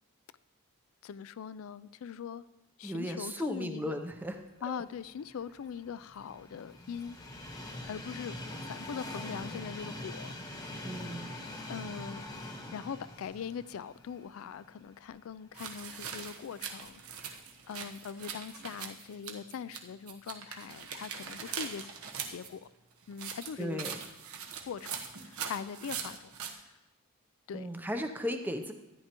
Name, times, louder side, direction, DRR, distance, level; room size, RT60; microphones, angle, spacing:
voice 1, 1.0-2.4 2.8-4.0 4.6-7.2 7.9-8.3 8.6-10.3 10.7-11.0 11.3-11.4 11.7-12.2 12.7-17.3 17.7-21.9 22.3-22.7 23.1-23.8 24.6-26.7 27.5-27.7, left 7 dB, 65° left, 17 dB, 0.3 m, -41 dB
voice 2, 2.8-4.3 4.7-4.8 10.8-11.5 23.6-24.0 27.5-28.7, equal, 10° right, 5 dB, 0.5 m, -36 dB
Train, 5.1-15.2 15.7-15.8 16.9-17.0, left 1 dB, 15° left, 1.0 m, -43 dB
sound 1, 15.5-19.8 20.1-22.5 23.1-26.5, right 7 dB, 75° right, 1.1 m, -41 dB
13.0 x 10.0 x 2.9 m, 1.1 s
head